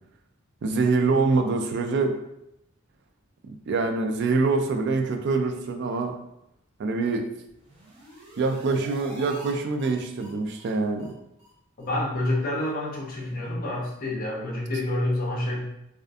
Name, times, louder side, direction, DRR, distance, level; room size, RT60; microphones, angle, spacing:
voice 1, 0.6-2.1 3.5-6.1 6.8-7.2 8.4-11.1, right 3 dB, 55° right, 5 dB, 0.3 m, -25 dB
sound 1, 7.5-9.5 9.8-9.9 10.2-10.3 10.6-10.7 11.0-11.1 11.4-11.5 11.8-11.9 12.2-12.3 12.6-12.7, equal, 30° right, 0.7 m, -46 dB
voice 2, 11.8-15.6, left 1 dB, 45° left, -2 dB, 0.5 m, -28 dB
2.5 x 2.4 x 2.3 m, 0.81 s
head